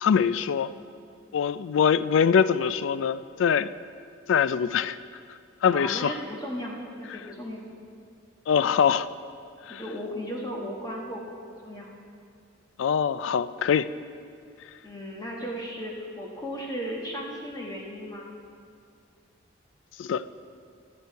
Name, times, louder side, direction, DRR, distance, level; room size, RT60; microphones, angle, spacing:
voice 1, 0.0-0.7 1.3-3.7 4.3-5.0 5.6-6.1 8.5-9.1 9.7-9.8 12.8-13.9 20.0-20.2, left 7 dB, 70° left, 15 dB, 0.3 m, -23 dB
voice 2, 5.7-7.6 9.7-11.2 11.5-11.9 14.8-18.3, equal, 20° left, -2 dB, 1.2 m, -35 dB
11.5 x 9.4 x 4.6 m, 2.4 s
head